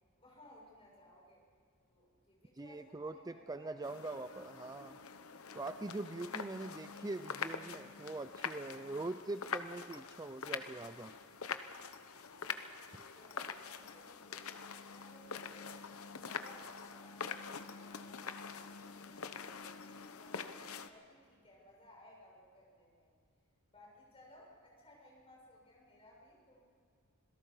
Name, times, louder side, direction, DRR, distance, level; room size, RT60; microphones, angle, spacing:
voice 1, 0.1-1.4 1.9-3.9 12.3-15.7 16.1-23.1 23.7-26.6, left 1 dB, 25° left, -2 dB, 6.9 m, -61 dB
voice 2, 2.6-5.0 5.5-11.1, right 2 dB, 15° right, 10 dB, 0.4 m, -43 dB
sound 1, 3.8-20.9, left 6 dB, 75° left, 1.0 m, -45 dB
27.0 x 17.5 x 5.5 m, 2.3 s
head